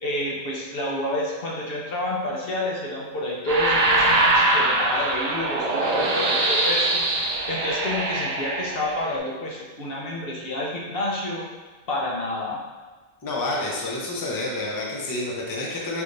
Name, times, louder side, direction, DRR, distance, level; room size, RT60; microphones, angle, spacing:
voice 1, 0.0-7.0 7.5-11.4 11.9-12.6, left 1 dB, 50° left, -3 dB, 0.9 m, -29 dB
sound 1, 3.5-9.1, right 2 dB, 50° right, 0.5 m, -23 dB
voice 2, 13.2-16.0, left 2 dB, 30° left, -3 dB, 0.4 m, -29 dB
4.6 x 3.5 x 2.6 m, 1.4 s
omnidirectional pair, 1.3 m